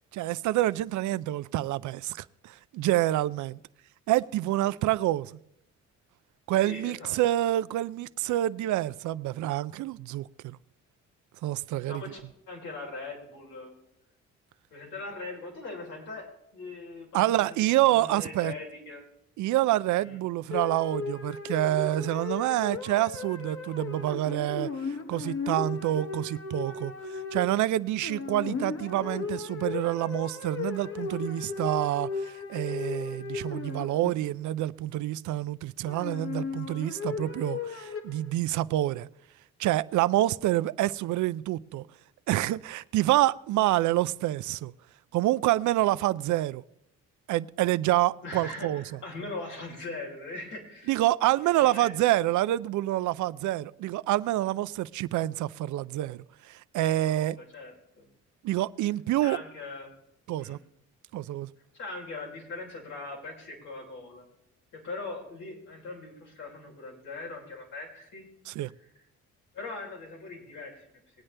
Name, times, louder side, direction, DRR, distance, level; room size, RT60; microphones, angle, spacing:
voice 1, 0.1-3.6 4.1-5.4 6.5-10.6 11.4-12.0 17.1-18.5 19.4-39.1 39.6-41.9 42.3-44.7 45.1-46.6 47.3-48.8 50.9-57.4 58.4-59.4 60.3-60.6 61.1-61.5 68.5-68.7, right 15 dB, 75° right, 0.5 m, -27 dB
voice 2, 6.6-7.2 11.9-12.2 12.5-13.8 14.7-19.1 20.0-20.2 48.2-51.0 51.3-51.9 57.1-58.1 59.2-59.9 60.4-60.6 61.8-64.3 64.7-68.3 69.5-70.9, left 3 dB, 80° left, 3.8 m, -41 dB
sound 1, 20.5-34.5 35.9-38.3, left 4 dB, 45° left, 1.2 m, -36 dB
20.5 x 8.7 x 3.3 m
cardioid pair, 90°, 30 cm